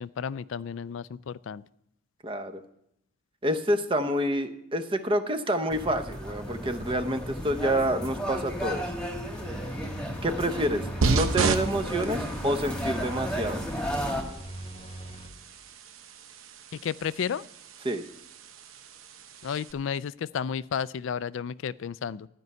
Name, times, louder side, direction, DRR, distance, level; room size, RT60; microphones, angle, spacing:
voice 1, 0.0-1.6 16.7-17.5 19.4-22.3, left 7 dB, 65° left, 19 dB, 0.3 m, -32 dB
voice 2, 2.2-2.6 3.4-8.9 10.2-13.6 17.8-18.0, right 1 dB, 25° right, 8 dB, 0.7 m, -28 dB
sound 1, 5.7-14.2, equal, 5° left, 1.4 m, -34 dB
sound 2, 9.3-15.6, right 1 dB, 30° left, 1.0 m, -42 dB
sound 3, 11.0-19.7, right 4 dB, 75° right, 0.9 m, -33 dB
12.5 x 5.4 x 9.1 m, 0.76 s
head